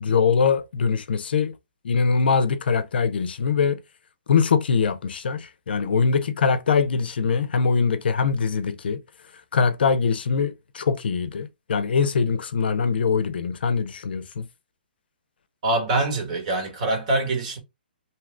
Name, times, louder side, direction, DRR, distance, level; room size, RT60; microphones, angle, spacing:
voice 1, 0.0-1.5 1.8-3.8 4.3-9.0 9.5-14.4, left 5 dB, 70° left, 0.5 m, -22 dB
voice 2, 15.6-17.6, right 2 dB, 45° right, 1.4 m, -24 dB
2.7 x 2.4 x 3.1 m
hypercardioid pair, 150°, 6 cm